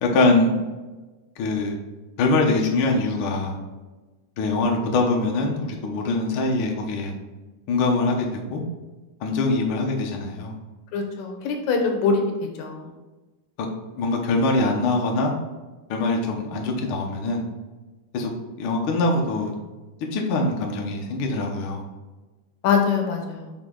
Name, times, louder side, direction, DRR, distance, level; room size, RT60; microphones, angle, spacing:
voice 1, 0.0-0.5 1.4-1.8 2.2-3.6 4.4-7.1 7.7-8.6 9.2-10.5 13.6-13.7 14.0-15.3 15.9-17.4 18.1-18.3 18.6-19.5 20.1-21.8, left 2 dB, 65° left, 1 dB, 1.4 m, -23 dB
voice 2, 10.9-12.2 12.6-12.9 22.6-23.5, left 5 dB, 80° left, 3 dB, 2.3 m, -23 dB
6.6 x 4.5 x 3.8 m, 1.2 s
omnidirectional pair, 3.3 m